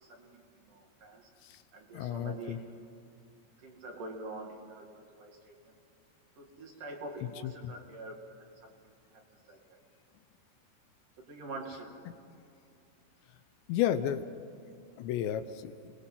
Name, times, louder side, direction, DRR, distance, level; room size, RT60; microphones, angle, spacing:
voice 1, 0.0-1.3 1.7-2.7 3.6-4.9 5.2-5.7 6.4-8.9 9.5-9.8 11.2-12.0, right 2 dB, 50° right, 1 dB, 3.4 m, -45 dB
voice 2, 1.9-2.6 7.4-7.7 12.1-12.2 13.7-14.3 15.0-15.7, left 10 dB, 80° left, 10 dB, 2.9 m, -32 dB
30.0 x 20.5 x 5.7 m, 2.6 s
omnidirectional pair, 5.3 m